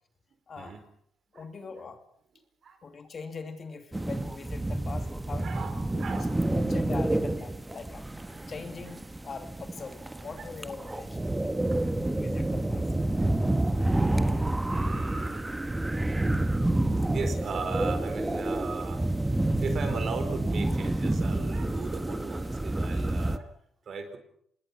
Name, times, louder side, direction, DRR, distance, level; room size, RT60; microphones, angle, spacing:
voice 1, 1.3-2.0 2.8-5.5 5.9-8.1 8.5-11.6 12.0-12.8, left 5 dB, 45° left, 7 dB, 2.7 m, -42 dB
sound 1, 3.9-23.4, right 1 dB, 10° right, 1.4 m, -29 dB
voice 2, 5.4-6.6 8.3-8.4 10.1-10.5 10.9-12.1 13.2-13.3 13.7-15.5 16.0-16.4 16.9-19.1 19.6-23.5 23.9-24.2, right 5 dB, 55° right, 8 dB, 4.7 m, -39 dB
26.0 x 20.0 x 6.1 m, 0.68 s
cardioid pair, 90°, 0 cm